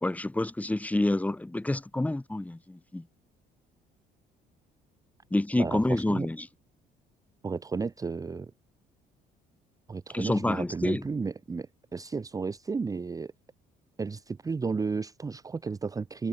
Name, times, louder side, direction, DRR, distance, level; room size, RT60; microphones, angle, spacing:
voice 1, 0.0-3.0 5.3-6.5 10.1-11.0, left 1 dB, 10° left, 2.5 m, -28 dB
voice 2, 5.6-6.3 7.4-8.5 9.9-13.3 14.0-16.3, right 4 dB, 20° right, 0.7 m, -33 dB
cardioid pair, 110°, 17 cm